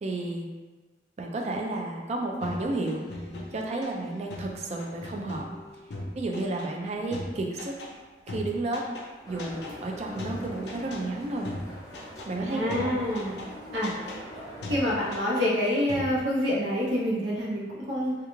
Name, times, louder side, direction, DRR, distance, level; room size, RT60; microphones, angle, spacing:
voice 1, 0.0-0.5 1.2-3.0 3.5-5.5 6.1-7.7 8.3-8.9 9.3-11.5 12.3-13.0, right 2 dB, 40° right, 1 dB, 0.3 m, -32 dB
sound 1, 2.4-8.0 8.3-9.1 9.4-9.8 10.2-11.1 11.4-12.3 12.7-13.5 13.8-14.2 14.6-15.6 15.9-16.3, left 1 dB, 65° left, 0.4 m, -39 dB
sound 2, 9.2-15.2, equal, 20° left, 0.6 m, -43 dB
voice 2, 12.4-13.3 13.7-13.9 14.7-18.1, left 1 dB, 85° right, -6 dB, 0.8 m, -27 dB
2.3 x 2.3 x 3.0 m, 1.3 s
head